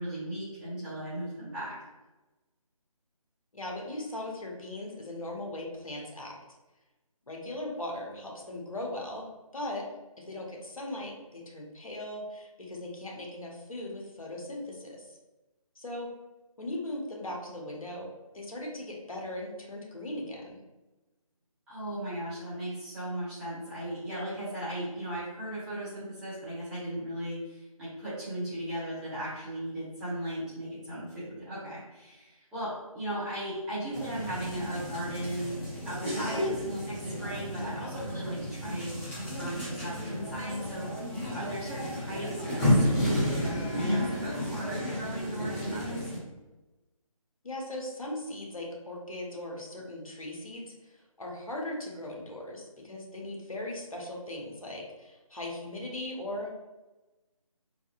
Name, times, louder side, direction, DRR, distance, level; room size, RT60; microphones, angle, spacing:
voice 1, 0.0-1.8 21.7-36.6 36.8-38.9 39.3-46.1, right 1 dB, 5° right, -15 dB, 0.7 m, -37 dB
voice 2, 3.5-6.4 7.3-9.3 9.5-9.9 10.2-15.2 15.7-16.1 16.6-18.1 18.3-20.6 47.4-56.5, left 1 dB, 70° left, -1 dB, 1.1 m, -38 dB
sound 1, 33.9-46.2, left 1 dB, 20° left, 1.2 m, -32 dB
4.0 x 2.7 x 2.5 m, 1.1 s
figure-of-eight pair, 155°, 18 cm